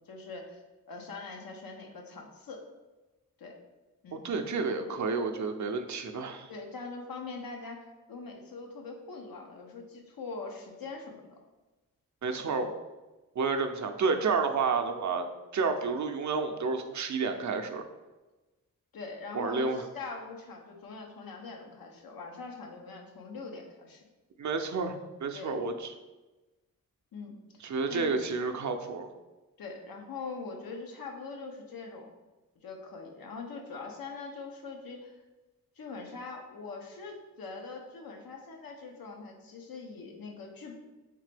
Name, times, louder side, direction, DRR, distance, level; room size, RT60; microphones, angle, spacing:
voice 1, 0.1-0.6 0.9-2.6 3.4-3.5 4.0-4.2 6.5-11.3 12.3-12.4 18.9-24.0 25.3-25.6 27.1-27.6 27.9-28.1 29.6-32.1 32.6-35.1 35.8-40.8, left 4 dB, 75° left, 1 dB, 0.8 m, -42 dB
voice 2, 4.1-6.5 12.2-12.7 13.4-15.3 15.5-17.8 19.3-19.8 24.4-25.9 27.6-29.1, right 4 dB, 55° right, 6 dB, 0.5 m, -30 dB
3.7 x 3.2 x 3.3 m, 1.1 s
cardioid pair, 50°, 35 cm